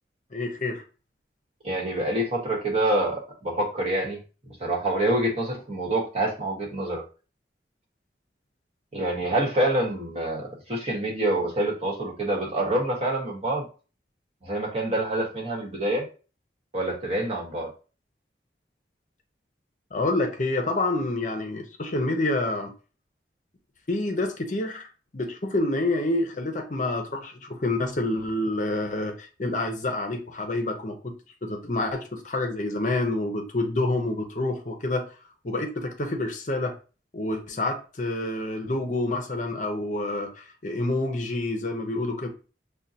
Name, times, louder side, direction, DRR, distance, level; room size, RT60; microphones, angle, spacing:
voice 1, 0.3-0.8 19.9-22.7 23.9-24.9 25.1-31.1 31.4-35.0 35.4-36.7 37.1-42.3, left 2 dB, 45° left, 4 dB, 0.6 m, -28 dB
voice 2, 1.6-4.2 4.5-7.0 8.9-13.7 14.4-16.0 16.7-17.7, right 1 dB, 35° right, -3 dB, 1.2 m, -26 dB
6.2 x 2.2 x 2.7 m, 0.35 s
head